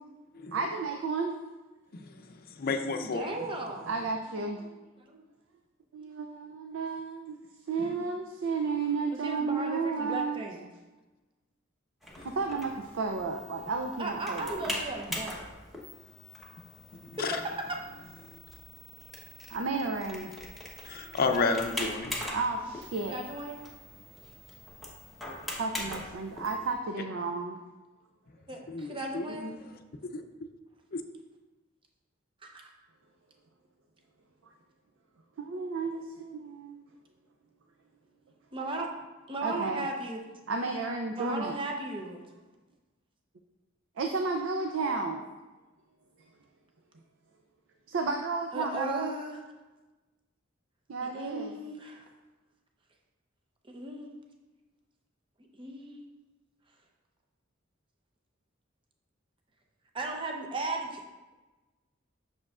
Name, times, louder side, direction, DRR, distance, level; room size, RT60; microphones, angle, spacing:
voice 1, 0.5-1.3 3.9-4.6 5.9-7.4 7.7-10.4 12.2-14.6 19.5-20.3 22.3-23.2 25.6-27.6 35.4-36.8 39.4-39.8 40.5-41.5 44.0-45.2 47.9-49.1 50.9-51.5, right 4 dB, 70° right, 4 dB, 0.5 m, -32 dB
voice 2, 1.9-2.3 2.6-3.3 7.8-7.9 12.2-12.3 17.0-17.4 18.2-18.4 20.8-22.2 23.9-24.0 28.7-29.6 30.0-30.2 30.9-31.0, left 4 dB, 50° left, 6 dB, 0.5 m, -32 dB
voice 3, 3.1-3.9 4.6-5.2 9.2-10.7 14.0-15.5 17.2-17.3 23.1-23.6 28.5-29.5 32.4-32.7 38.5-38.9 39.3-40.4 41.2-42.2 48.5-49.4 51.0-52.0 53.7-54.1 55.6-56.1 59.9-61.0, right 2 dB, 25° right, 1 dB, 0.7 m, -36 dB
sound 1, 12.0-26.7, left 1 dB, ahead, 1.0 m, -42 dB
7.5 x 6.3 x 2.4 m, 1.2 s
head